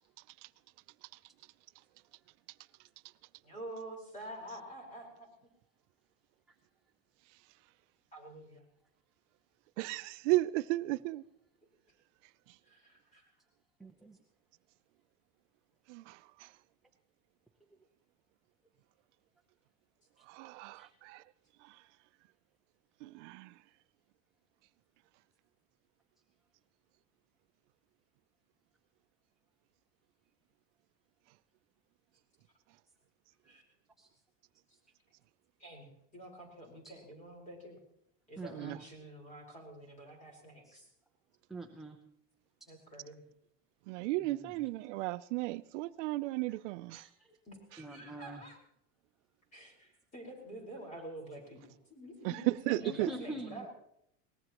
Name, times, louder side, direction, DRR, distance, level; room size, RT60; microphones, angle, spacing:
voice 1, 3.4-5.3 8.1-8.6 10.9-11.0 12.6-13.3 33.4-33.6 35.6-37.8 38.3-40.9 42.7-43.2 47.5-48.6 49.5-51.6 51.9-53.7, right 1 dB, 20° left, 4.6 m, -48 dB
voice 2, 9.8-11.2 15.9-16.5 20.3-21.2 21.6-21.8 23.0-23.5 38.5-38.8 43.9-47.1 52.2-52.3 52.7-53.1, right 19 dB, 80° right, 0.6 m, -35 dB
voice 3, 13.8-14.2 20.8-20.9 34.0-34.1 36.8-36.9 38.4-38.8 40.6-40.8 41.5-42.0 44.2-44.5 46.9-47.4 47.8-48.4 52.8-53.7, right 2 dB, ahead, 0.7 m, -44 dB
22.5 x 19.0 x 3.0 m
cardioid pair, 170°, 35 cm